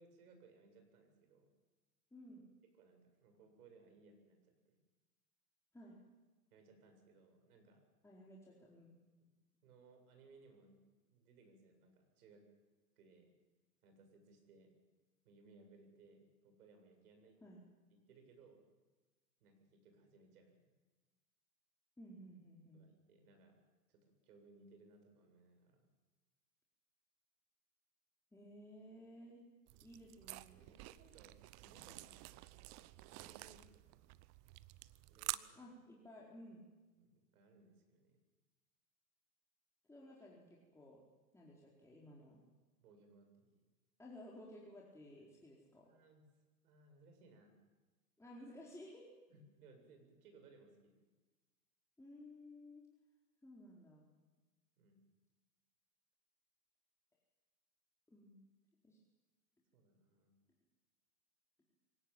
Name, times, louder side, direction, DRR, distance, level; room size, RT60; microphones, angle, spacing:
voice 1, 0.0-1.5 2.8-4.4 4.6-4.8 6.5-7.8 9.6-10.8 11.1-12.5 13.0-13.3 13.8-14.7 15.2-17.4 17.9-18.6 19.4-20.7 22.7-23.6 23.9-25.9 29.7-29.9 30.2-34.1 35.1-35.6 37.0-38.2 42.8-43.6 45.2-45.3 45.8-46.2 46.6-47.6 49.3-51.0 54.8-55.0 59.7-60.3, right 3 dB, 65° right, 5 dB, 7.8 m, -65 dB
voice 2, 2.1-2.5 5.7-6.0 8.0-9.0 17.4-17.6 22.0-22.8 28.3-29.4 29.8-30.6 35.5-36.6 39.9-41.0 41.3-42.4 44.0-45.9 48.2-49.1 52.0-52.8 53.4-54.1 58.1-58.4 58.8-59.0, equal, 5° left, -4 dB, 4.4 m, -56 dB
sound 1, 29.7-35.4, right 21 dB, 35° right, 0.8 m, -49 dB
25.5 x 17.5 x 9.1 m, 1.2 s
hypercardioid pair, 110°, 49 cm